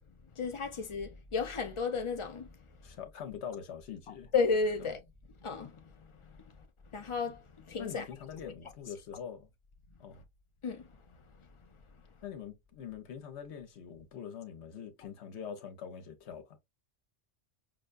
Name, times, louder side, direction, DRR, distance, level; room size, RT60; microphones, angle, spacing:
voice 1, 0.4-2.5 4.3-5.0 5.4-6.1 6.9-8.0 8.4-8.5 10.6-10.9, left 4 dB, 35° left, 0.5 m, -33 dB
voice 2, 2.8-4.3 4.8-4.9 7.8-9.5 10.0-10.2 12.2-16.6, left 8 dB, 70° left, 1.1 m, -44 dB
5.6 x 2.2 x 2.4 m
omnidirectional pair, 1.2 m